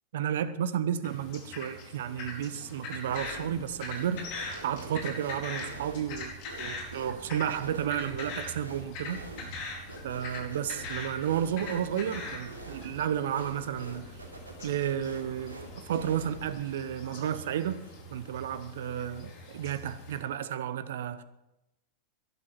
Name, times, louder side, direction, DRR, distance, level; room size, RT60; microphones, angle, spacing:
voice 1, 0.1-9.8 10.0-14.2 14.6-17.8 18.1-21.2, right 9 dB, 65° right, 0.9 m, -32 dB
sound 1, 1.0-20.2, left 2 dB, 50° left, 4.5 m, -42 dB
sound 2, 3.0-3.7 3.9-16.6, right 1 dB, 85° right, 3.0 m, -46 dB
12.0 x 11.5 x 9.1 m
figure-of-eight pair, 90°, 0 cm